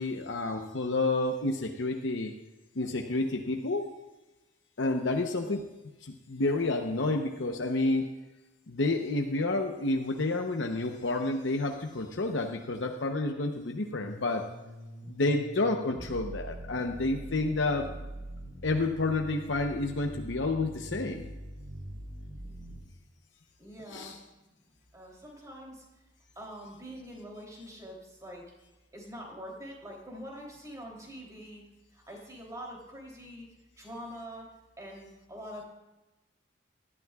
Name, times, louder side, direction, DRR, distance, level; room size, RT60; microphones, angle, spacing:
voice 1, 0.0-2.3 2.8-3.9 4.8-5.7 6.0-8.1 8.7-14.4 15.1-17.9 18.6-21.3 23.9-24.2, left 2 dB, 70° left, 3 dB, 0.8 m, -30 dB
sound 1, 14.0-22.8, right 1 dB, 85° right, 4.2 m, -43 dB
voice 2, 23.6-24.2 24.9-25.8 26.3-28.4 28.9-31.6 31.9-33.5 33.8-34.5 34.8-35.6, equal, 20° right, -2 dB, 3.1 m, -44 dB
18.5 x 12.0 x 2.4 m, 1.0 s
head